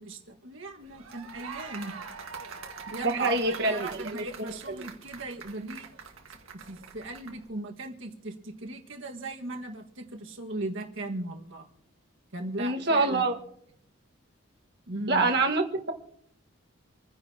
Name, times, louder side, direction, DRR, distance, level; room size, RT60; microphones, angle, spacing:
voice 1, 0.0-1.9 2.9-5.9 6.3-11.7 12.3-13.3 14.9-15.3, right 2 dB, 70° right, 2 dB, 1.7 m, -38 dB
sound 1, 0.8-7.5, right 5 dB, 85° right, 1.7 m, -44 dB
voice 2, 3.0-4.5 12.6-13.3 15.1-15.9, right 3 dB, 50° right, 2 dB, 1.6 m, -26 dB
27.5 x 10.5 x 2.9 m, 0.73 s
head